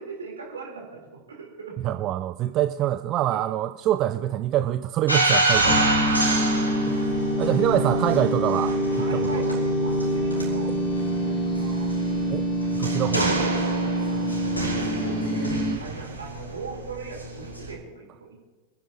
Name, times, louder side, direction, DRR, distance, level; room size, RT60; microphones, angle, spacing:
voice 1, 0.0-1.8 3.3-3.4 6.2-6.5 7.7-7.9 8.9-11.9 13.5-14.3 14.7-15.5 15.8-18.4, right 4 dB, 70° right, 0 dB, 3.4 m, -40 dB
voice 2, 1.8-5.9 6.9-7.0 7.4-9.4 12.3-12.5 12.8-13.5, right 12 dB, 35° right, 9 dB, 0.4 m, -25 dB
sound 1, 5.1-17.7, right 2 dB, 90° left, 4.2 m, -29 dB
sound 2, 5.7-15.8, equal, 20° left, 1.9 m, -25 dB
25.5 x 10.0 x 2.8 m, 1.2 s
figure-of-eight pair, 90°, 0 cm